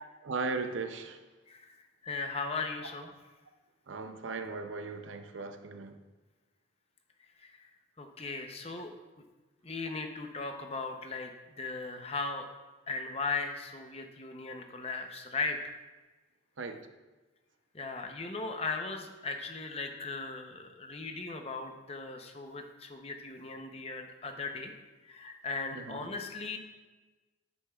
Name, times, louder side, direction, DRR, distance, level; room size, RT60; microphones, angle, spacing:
voice 1, 0.2-1.2 3.9-6.0 16.6-16.9 25.7-26.1, right 4 dB, 75° right, 7 dB, 0.6 m, -37 dB
voice 2, 1.5-3.1 7.4-7.7 8.0-8.9 9.6-12.5 12.9-15.8 17.7-24.7 25.0-26.6, left 4 dB, 30° left, 5 dB, 0.7 m, -38 dB
9.5 x 9.4 x 2.4 m, 1.2 s
head